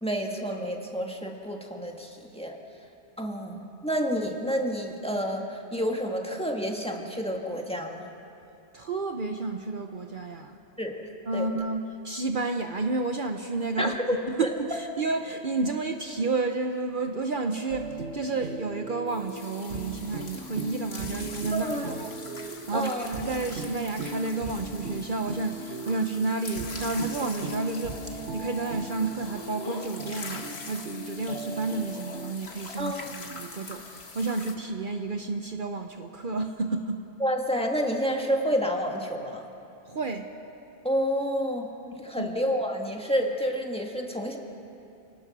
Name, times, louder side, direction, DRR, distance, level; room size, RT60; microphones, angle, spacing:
voice 1, 0.0-2.6 3.2-8.0 10.8-11.0 11.3-11.5 13.8-14.2 21.5-21.8 22.7-23.0 32.8-33.1 37.2-39.4 40.8-44.4, equal, 5° left, 1 dB, 1.8 m, -29 dB
voice 2, 8.7-10.6 11.3-14.0 14.3-37.0 39.9-40.3 42.2-42.3, right 3 dB, 50° right, 5 dB, 1.0 m, -31 dB
sound 1, 17.7-32.3, right 3 dB, 80° right, 1.4 m, -38 dB
sound 2, 19.1-34.5, left 3 dB, 70° left, 1.7 m, -43 dB
28.5 x 18.0 x 6.2 m, 2.8 s
omnidirectional pair, 1.1 m